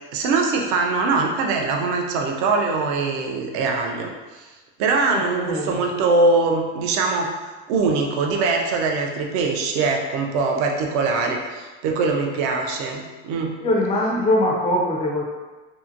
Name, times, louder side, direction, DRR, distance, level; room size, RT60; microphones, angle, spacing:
voice 1, 0.1-4.5 4.8-7.3 7.7-13.6, right 3 dB, 60° right, 2 dB, 0.5 m, -22 dB
voice 2, 5.1-5.8 13.6-15.2, left 1 dB, 20° left, -2 dB, 0.3 m, -22 dB
2.8 x 2.5 x 2.5 m, 1.3 s
cardioid pair, 155°, 34 cm